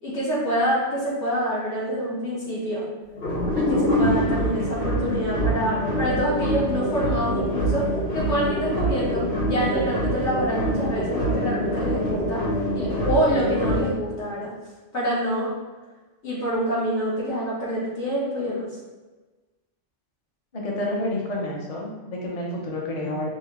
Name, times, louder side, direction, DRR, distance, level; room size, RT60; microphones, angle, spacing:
voice 1, 0.0-2.9 3.5-12.4 12.7-14.5 14.9-15.5 16.2-18.7, equal, 70° left, -8 dB, 1.8 m, -26 dB
sound 1, 3.1-13.9, equal, 85° left, 1.9 m, -25 dB
voice 2, 20.5-23.3, left 1 dB, 35° left, -2 dB, 0.8 m, -29 dB
5.4 x 2.2 x 3.4 m, 1.2 s
omnidirectional pair, 1.2 m